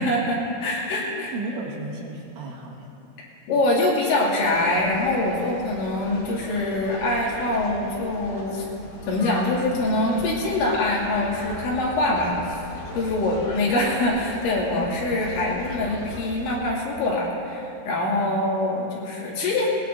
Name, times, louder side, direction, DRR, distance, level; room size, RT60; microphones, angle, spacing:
voice 1, 0.0-1.3 3.5-8.7 9.1-12.4 12.9-19.7, left 2 dB, 70° left, -5 dB, 4.5 m, -24 dB
voice 2, 1.0-2.9 14.7-14.8, right 2 dB, 70° right, -3 dB, 3.9 m, -34 dB
sound 1, 4.4-16.6, left 1 dB, 35° left, 2.1 m, -39 dB
20.5 x 19.5 x 2.6 m, 2.8 s
omnidirectional pair, 5.8 m